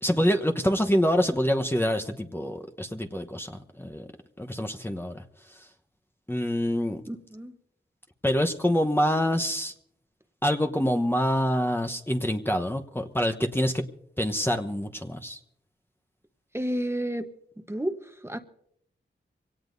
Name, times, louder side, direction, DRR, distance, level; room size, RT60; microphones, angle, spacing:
voice 1, 0.0-4.0 4.4-5.2 6.3-7.0 8.2-9.7 10.4-13.8 14.2-15.4, equal, 10° left, 1.0 m, -26 dB
voice 2, 7.1-7.5 16.5-17.3 17.7-18.4, right 1 dB, 15° right, 1.1 m, -31 dB
23.5 x 17.5 x 2.7 m
cardioid pair, 45°, 20 cm